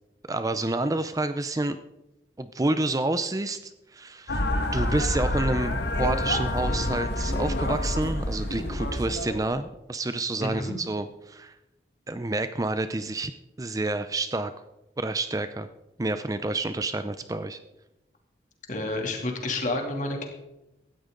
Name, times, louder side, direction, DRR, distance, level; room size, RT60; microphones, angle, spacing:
voice 1, 0.3-1.8 2.4-11.5 12.1-13.3 13.6-14.5 15.0-15.7 16.0-17.6, right 2 dB, 20° right, 11 dB, 0.5 m, -29 dB
sound 1, 4.3-9.5, left 1 dB, 65° left, 1.7 m, -27 dB
voice 2, 10.4-10.7 18.7-20.3, left 2 dB, 45° left, 2 dB, 2.8 m, -29 dB
17.0 x 13.5 x 3.9 m, 0.96 s
head